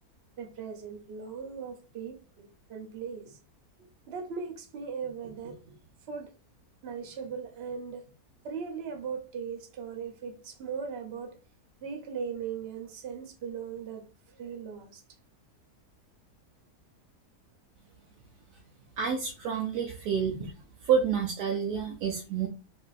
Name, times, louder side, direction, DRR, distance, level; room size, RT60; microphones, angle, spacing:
voice 1, 0.4-3.4 4.1-5.8 6.1-6.3 6.8-8.1 8.4-11.4 11.8-14.0 14.3-15.0 20.2-20.5, right 6 dB, 60° right, 0.7 m, -38 dB
voice 2, 19.0-20.3 20.9-22.5, right 7 dB, 80° right, 1.1 m, -28 dB
3.3 x 2.7 x 2.4 m
omnidirectional pair, 1.7 m